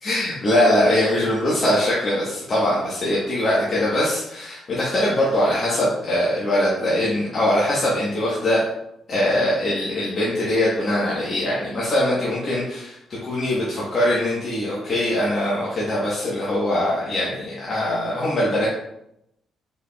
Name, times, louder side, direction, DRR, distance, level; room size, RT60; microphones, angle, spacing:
voice 1, 0.0-8.6 9.1-13.0 13.2-18.7, left 1 dB, 45° left, -7 dB, 1.1 m, -22 dB
4.3 x 3.5 x 2.3 m, 0.81 s
cardioid pair, 90°, 0 cm